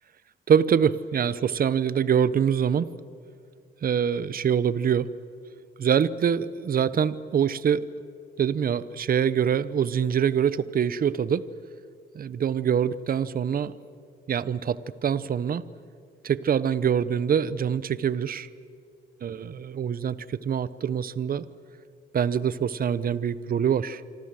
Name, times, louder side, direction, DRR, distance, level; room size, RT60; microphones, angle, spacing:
voice 1, 0.5-2.9 3.8-5.1 5.8-7.9 8.4-11.4 12.1-13.7 14.3-15.6 16.2-18.5 19.2-21.4 22.1-24.0, right 8 dB, 45° right, 17 dB, 0.9 m, -24 dB
26.5 x 25.5 x 7.7 m, 2.2 s
cardioid pair, 90°, 20 cm